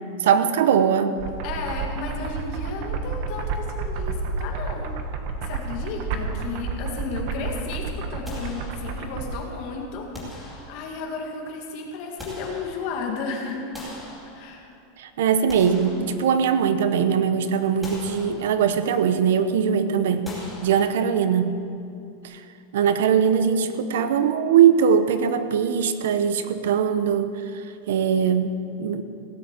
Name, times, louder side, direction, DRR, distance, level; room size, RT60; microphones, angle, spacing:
voice 1, 0.2-1.2 15.0-20.4 20.6-21.7 22.2-22.4 22.7-27.6 27.9-29.0, right 7 dB, 75° right, 11 dB, 0.8 m, -21 dB
sound 1, 1.2-9.4, right 4 dB, 40° right, 1.1 m, -30 dB
voice 2, 1.4-4.9 5.4-13.6 14.2-14.6, left 4 dB, 40° left, 1 dB, 2.0 m, -33 dB
sound 2, 8.2-9.3 10.1-11.2 11.8-13.2 13.7-14.8 15.3-16.7 17.1-17.3 17.8-18.9 20.2-21.4, left 1 dB, ahead, 2.4 m, -42 dB
16.5 x 7.4 x 7.5 m, 2.6 s
supercardioid pair, 175°, 0 cm